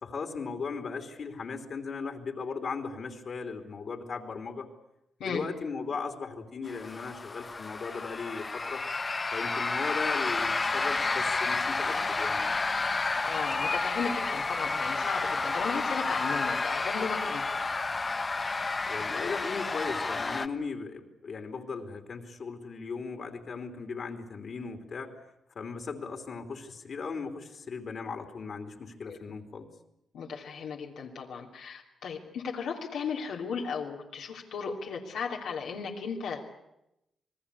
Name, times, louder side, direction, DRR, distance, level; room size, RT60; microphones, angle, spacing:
voice 1, 0.0-4.7 5.2-8.8 9.3-12.4 18.9-25.1 25.5-29.7, left 5 dB, 60° left, 5 dB, 3.2 m, -37 dB
sound 1, 6.7-20.5, left 3 dB, 35° left, 1.4 m, -30 dB
voice 2, 13.2-17.4 29.1-29.2 30.1-36.6, left 6 dB, 85° left, -1 dB, 3.1 m, -35 dB
27.5 x 19.5 x 8.4 m, 0.86 s
cardioid pair, 70°, 0 cm